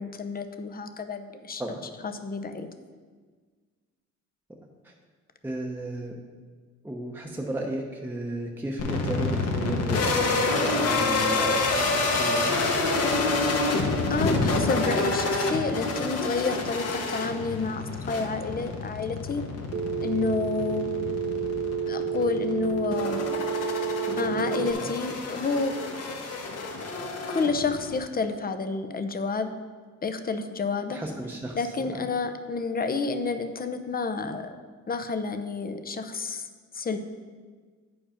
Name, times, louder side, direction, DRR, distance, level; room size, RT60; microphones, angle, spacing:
voice 1, 0.0-1.6 2.0-2.7 14.1-19.4 20.0-20.9 21.9-23.3 24.1-25.8 27.3-29.5 30.0-31.0 31.5-34.6 34.9-36.5 36.7-37.0, left 4 dB, 30° left, 8 dB, 0.7 m, -29 dB
voice 2, 5.4-6.1 6.8-12.5 24.7-24.9 30.9-32.0, right 1 dB, 5° right, -1 dB, 0.9 m, -34 dB
sound 1, 8.8-28.0, left 3 dB, 55° left, 1.3 m, -28 dB
Telephone, 19.7-24.7, right 7 dB, 45° right, 0.5 m, -30 dB
8.7 x 5.0 x 5.1 m, 1.5 s
cardioid pair, 90°, 30 cm